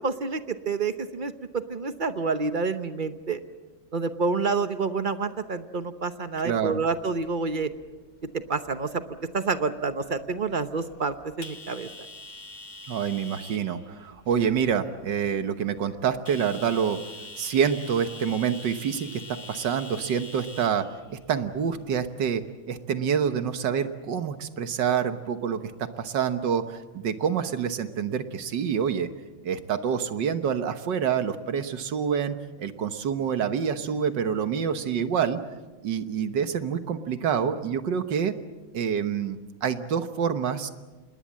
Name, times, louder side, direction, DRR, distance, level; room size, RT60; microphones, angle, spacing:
voice 1, 0.0-3.4 3.9-7.7 8.5-9.0 9.3-11.9, right 4 dB, 45° right, 10 dB, 0.7 m, -28 dB
voice 2, 6.4-6.8 12.9-17.0 17.4-29.1 29.4-35.4 35.8-38.4 38.7-40.7, right 7 dB, 65° right, 9 dB, 1.8 m, -27 dB
sound 1, 6.6-22.5, left 3 dB, 25° left, 1.5 m, -46 dB
27.5 x 20.5 x 7.5 m, 1.2 s
omnidirectional pair, 2.1 m